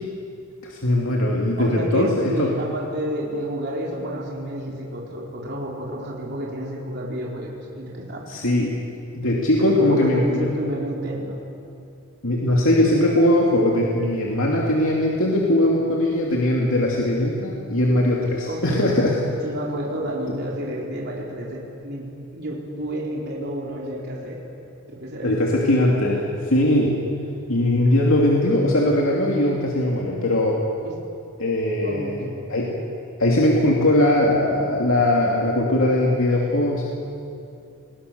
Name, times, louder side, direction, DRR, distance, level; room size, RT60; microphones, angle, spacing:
voice 1, 0.6-2.6 8.3-8.7 9.1-10.5 12.2-19.1 25.2-27.0 27.5-30.6 31.4-32.7 33.2-36.9, left 1 dB, 70° left, -2 dB, 2.7 m, -20 dB
voice 2, 1.6-8.4 9.6-11.4 18.4-19.0 19.4-22.1 22.3-24.4 24.9-25.5 30.8-31.0 31.8-32.4, right 1 dB, 50° right, -3 dB, 3.9 m, -30 dB
29.0 x 20.5 x 6.9 m, 2.6 s
head